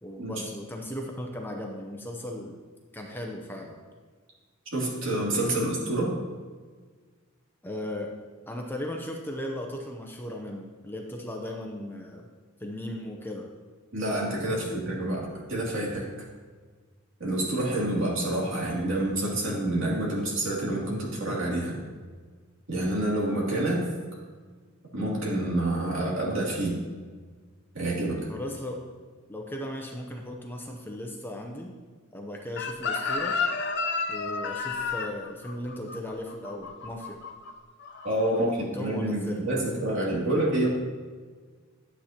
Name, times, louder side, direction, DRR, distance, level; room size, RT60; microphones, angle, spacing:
voice 1, 0.0-2.6 2.9-3.8 7.6-8.1 8.5-12.3 12.6-13.5 14.4-14.6 28.3-28.8 29.3-31.7 32.1-33.4 34.1-37.2 38.3-39.6, left 1 dB, 10° left, 1 dB, 0.7 m, -37 dB
voice 2, 4.7-6.1 13.9-16.0 17.2-21.7 22.7-23.9 24.9-26.8 27.7-28.3 38.0-38.5 38.8-40.7, right 1 dB, 65° right, -4 dB, 2.8 m, -28 dB
Chicken rooster, 32.6-37.5 37.8-38.1, left 4 dB, 55° left, 0.7 m, -31 dB
12.0 x 8.1 x 3.0 m, 1.5 s
head